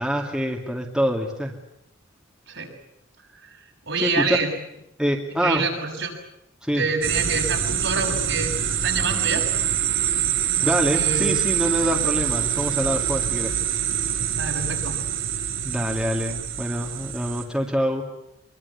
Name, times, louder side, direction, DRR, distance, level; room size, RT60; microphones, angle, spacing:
voice 1, 0.0-1.5 4.0-4.4 5.0-5.6 6.6-6.8 10.6-13.5 15.6-18.0, equal, 5° right, 0 dB, 2.4 m, -25 dB
voice 2, 3.9-4.5 5.4-6.2 6.7-8.6 8.8-9.5 10.6-11.3 14.4-15.0, right 4 dB, 65° right, 1 dB, 6.8 m, -27 dB
sound 1, 7.0-17.4, right 9 dB, 85° right, 7.0 m, -25 dB
25.0 x 23.5 x 8.4 m, 0.84 s
head